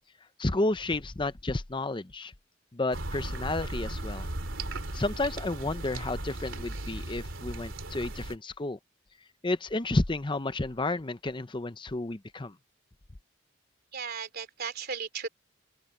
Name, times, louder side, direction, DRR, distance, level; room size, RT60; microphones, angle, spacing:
voice 1, 0.4-2.3 2.7-4.3 4.9-8.8 9.4-12.5, left 2 dB, 25° left, 0.7 m, -31 dB
sound 1, 2.9-8.4, right 1 dB, 75° right, 3.1 m, -37 dB
voice 2, 13.9-15.3, right 6 dB, 50° right, 3.1 m, -36 dB
open air
head